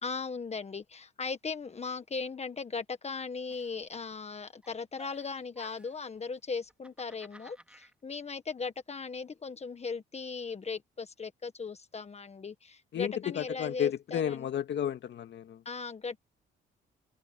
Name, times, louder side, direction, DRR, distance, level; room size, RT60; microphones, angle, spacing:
voice 1, 0.0-14.5 15.6-16.2, left 4 dB, 35° left, 1.5 m, -38 dB
Giggle, 3.5-4.3 4.6-6.1 6.6-7.9, right 1 dB, 5° right, 4.0 m, -57 dB
voice 2, 12.9-15.6, left 10 dB, 65° left, 2.1 m, -32 dB
cardioid pair, 90°, 20 cm